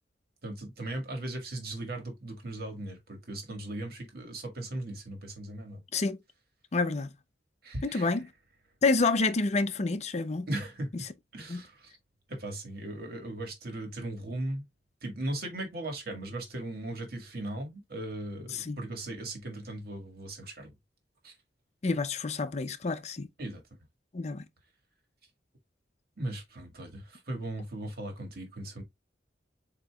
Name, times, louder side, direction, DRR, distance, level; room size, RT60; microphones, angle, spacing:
voice 1, 0.4-5.8 7.6-8.2 10.5-11.0 11.3-11.9 12.3-14.6 15.0-20.7 21.2-21.3 23.4-23.6 26.2-28.8, right 1 dB, 60° right, 1.8 m, -38 dB
voice 2, 6.7-7.1 7.8-8.2 8.8-10.5 11.5-11.6 18.5-18.8 21.8-23.3 24.1-24.4, left 3 dB, 40° left, 0.6 m, -28 dB
7.9 x 2.9 x 2.3 m
head